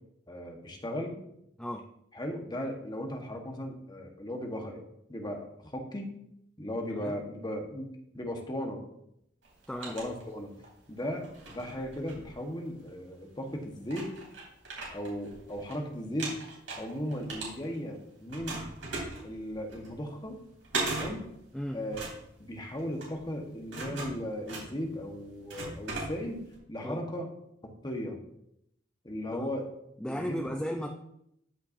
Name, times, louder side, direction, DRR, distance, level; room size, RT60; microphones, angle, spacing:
voice 1, 0.3-1.1 2.1-4.8 5.1-6.1 6.6-8.8 9.9-10.5 10.9-11.2 11.5-14.1 14.9-16.4 16.8-18.6 19.2-20.4 20.9-21.3 21.7-22.0 22.4-26.4 26.7-27.3 27.6-28.2 29.0-29.7 30.1-30.4, equal, 20° left, 3 dB, 1.2 m, -36 dB
sound 1, 9.4-10.7 11.2-12.9 13.5-13.6 13.9-15.8 16.0-18.0 18.3-26.6, right 3 dB, 80° right, 3.0 m, -39 dB
voice 2, 30.0-30.9, equal, 5° left, 2 dB, 0.5 m, -35 dB
13.5 x 5.7 x 2.7 m, 0.77 s
head